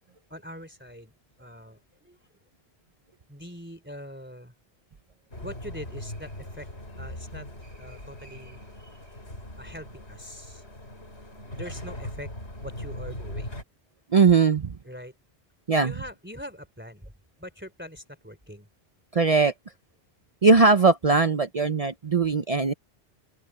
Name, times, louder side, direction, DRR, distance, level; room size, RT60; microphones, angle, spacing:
voice 1, 0.3-1.1 1.4-2.4 3.3-4.5 5.4-6.7 7.0-8.6 9.5-10.6 11.5-12.3 12.6-13.5 14.8-15.2 15.8-17.1 17.4-18.7, equal, 10° right, 3.2 m, -43 dB
sound 1, 5.3-13.6, left 1 dB, 90° left, 6.4 m, -40 dB
voice 2, 14.1-14.7 15.7-15.9 19.1-19.5 20.4-22.7, right 4 dB, 40° right, 0.7 m, -20 dB
omnidirectional pair, 1.1 m